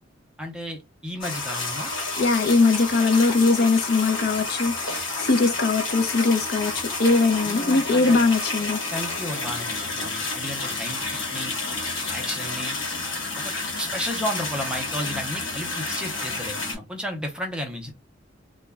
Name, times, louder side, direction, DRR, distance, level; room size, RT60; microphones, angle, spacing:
voice 1, 0.4-1.9 7.4-8.2 8.9-11.0 11.3-11.5 12.1-12.7 13.4-17.9, equal, 5° right, 0.5 m, -33 dB
sound 1, 1.2-16.8, left 3 dB, 85° left, 1.2 m, -30 dB
voice 2, 2.2-8.8, left 3 dB, 55° left, 0.5 m, -21 dB
2.2 x 2.0 x 3.3 m
head